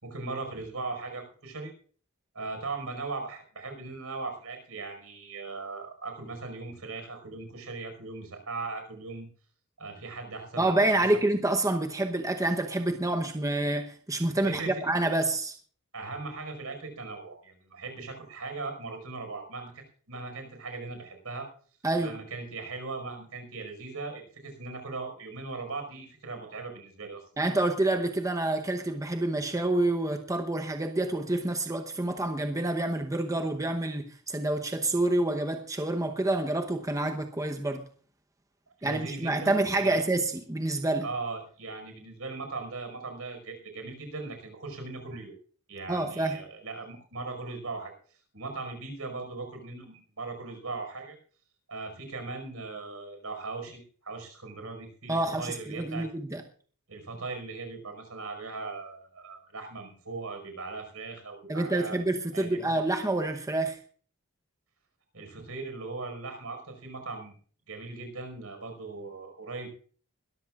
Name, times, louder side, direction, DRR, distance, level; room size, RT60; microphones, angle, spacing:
voice 1, 0.0-1.7 2.3-9.3 9.8-11.3 14.4-14.7 15.9-21.5 22.0-27.2 38.8-40.0 41.0-45.3 45.7-47.9 48.3-51.1 51.7-56.1 56.9-62.0 62.3-62.8 65.1-67.4 67.7-69.7, right 3 dB, 70° right, 5.1 m, -39 dB
voice 2, 10.6-15.5 21.8-22.1 27.4-37.8 38.8-41.1 45.9-46.4 55.1-56.4 61.5-63.8, right 2 dB, 15° right, 0.9 m, -28 dB
22.0 x 13.5 x 2.5 m
head